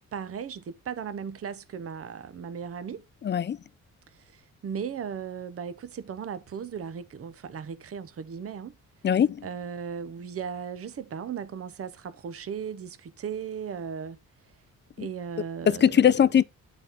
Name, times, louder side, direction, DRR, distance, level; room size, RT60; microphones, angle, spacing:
voice 1, 0.1-3.0 4.1-8.8 9.4-14.2 15.0-16.1, right 7 dB, 45° right, 0.8 m, -36 dB
voice 2, 3.2-3.6 9.0-9.5 15.0-15.1 15.7-16.4, left 8 dB, 35° left, 0.5 m, -21 dB
7.8 x 4.0 x 4.6 m
supercardioid pair, 60°, 33 cm